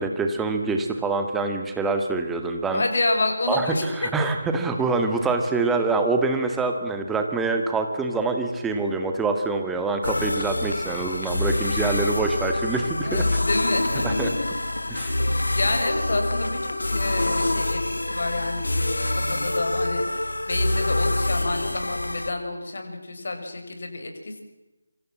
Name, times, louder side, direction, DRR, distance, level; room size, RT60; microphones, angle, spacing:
voice 1, 0.0-2.8 3.5-13.3 14.0-14.3 14.9-15.1, right 3 dB, 5° right, 5 dB, 2.0 m, -25 dB
voice 2, 2.7-4.3 13.0-14.5 15.0-24.4, left 2 dB, 50° left, 5 dB, 6.0 m, -29 dB
sound 1, 10.0-22.3, left 1 dB, 70° left, 2.1 m, -26 dB
26.5 x 25.5 x 7.6 m, 1.0 s
figure-of-eight pair, 155°, 0 cm